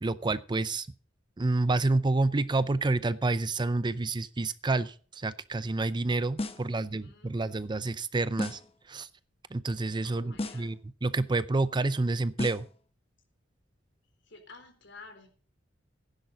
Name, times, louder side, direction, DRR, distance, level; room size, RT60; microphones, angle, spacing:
voice 1, 0.0-0.9 1.4-8.6 8.9-9.1 9.5-12.6, right 2 dB, 25° right, 0.5 m, -29 dB
sound 1, 6.4-6.8 8.4-8.8 10.4-10.8 12.4-12.8, left 2 dB, 30° left, 1.0 m, -35 dB
voice 2, 6.5-7.4 10.0-10.7 14.2-15.3, left 3 dB, 65° left, 3.8 m, -52 dB
15.5 x 10.5 x 4.0 m
head